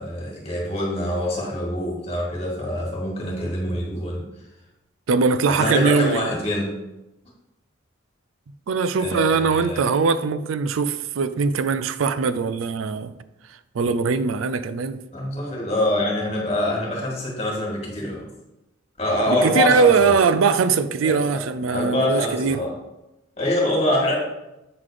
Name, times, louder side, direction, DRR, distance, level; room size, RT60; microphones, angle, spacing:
voice 1, 0.0-4.2 5.5-6.8 9.0-9.9 15.1-18.3 19.0-20.2 21.0-21.2 21.7-22.8 23.4-24.1, left 1 dB, 30° left, 1.8 m, -25 dB
voice 2, 5.1-6.2 8.7-13.1 13.7-15.0 19.3-22.6, right 5 dB, 90° right, 0.4 m, -21 dB
7.8 x 3.8 x 4.8 m
head